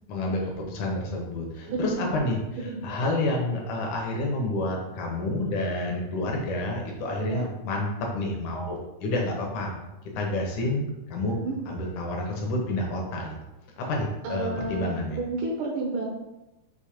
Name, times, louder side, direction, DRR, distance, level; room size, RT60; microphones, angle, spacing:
voice 1, 0.1-2.4 2.8-7.9 8.1-9.7 10.2-11.3 11.7-13.4 13.8-15.2, left 2 dB, 70° left, 0 dB, 2.0 m, -29 dB
voice 2, 1.7-2.1 2.7-2.8 7.2-7.4 11.4-11.6 14.2-16.1, right 2 dB, 70° right, -3 dB, 2.2 m, -31 dB
6.8 x 3.1 x 5.0 m, 0.97 s
omnidirectional pair, 4.4 m